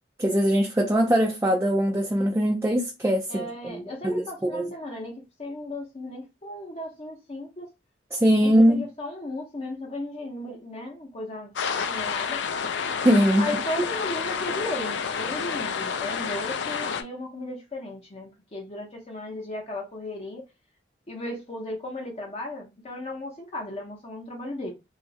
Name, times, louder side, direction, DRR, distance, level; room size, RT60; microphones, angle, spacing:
voice 1, 0.2-4.7 8.1-8.9 13.0-13.5, equal, 15° right, 0.4 m, -22 dB
voice 2, 3.3-7.7 8.4-12.4 13.4-20.5 21.1-24.7, left 1 dB, 35° left, 0.7 m, -36 dB
sound 1, 11.6-17.0, left 6 dB, 70° left, 0.4 m, -29 dB
3.0 x 2.4 x 2.7 m
head